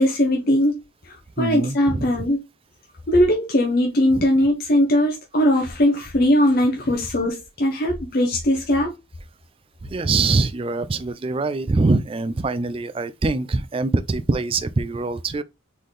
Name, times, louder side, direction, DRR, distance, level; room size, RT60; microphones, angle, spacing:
voice 1, 0.0-2.4 3.1-8.9, left 1 dB, 45° left, 0.8 m, -20 dB
voice 2, 1.4-2.0 4.1-4.2 9.8-15.4, right 3 dB, 25° right, 0.3 m, -23 dB
4.1 x 3.8 x 3.2 m
head